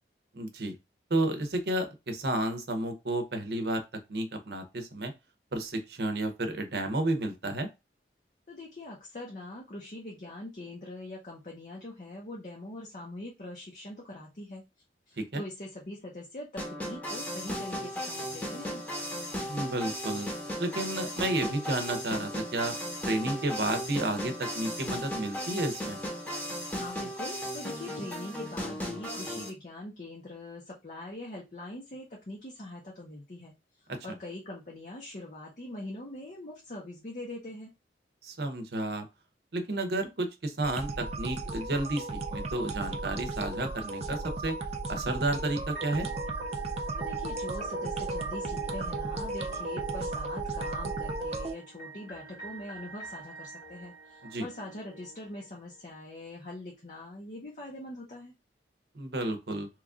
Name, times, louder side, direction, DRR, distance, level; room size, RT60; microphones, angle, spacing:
voice 1, 0.3-0.7 1.1-3.8 4.1-5.1 5.5-7.7 15.2-15.4 19.5-20.3 20.6-22.7 23.1-26.0 33.9-34.0 38.2-39.1 39.5-44.6 44.9-46.1 54.3-54.5 58.9-59.7, right 1 dB, 65° right, 7 dB, 0.7 m, -31 dB
voice 2, 8.5-14.6 15.1-18.8 26.8-33.5 34.0-37.7 46.9-58.3, left 1 dB, 45° left, -2 dB, 0.7 m, -43 dB
sound 1, 16.6-29.5, equal, 10° left, 0.9 m, -36 dB
sound 2, 40.6-51.5, right 3 dB, 35° right, 0.4 m, -35 dB
sound 3, 45.7-55.8, right 3 dB, 85° left, 1.7 m, -48 dB
3.0 x 2.4 x 3.6 m, 0.24 s
head